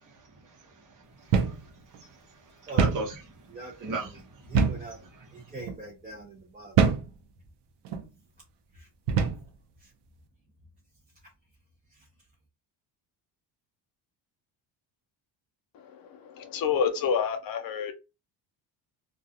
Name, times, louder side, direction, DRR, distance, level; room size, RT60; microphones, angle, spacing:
voice 1, 0.0-4.5 5.1-5.5, right 3 dB, 45° right, 1.1 m, -40 dB
sound 1, 1.3-1.6 1.9-2.0 2.8-3.1 4.5-4.9 5.6-5.8 6.8-7.1 7.8-8.1 9.1-9.5, right 6 dB, 65° right, 0.6 m, -24 dB
voice 2, 3.5-4.2 4.5-6.8 8.7-8.9 9.8-9.9 11.9-12.1, right 2 dB, 20° right, 0.5 m, -42 dB
voice 3, 16.3-17.9, left 7 dB, 50° left, 0.5 m, -27 dB
2.3 x 2.3 x 2.7 m
cardioid pair, 150°, 45 cm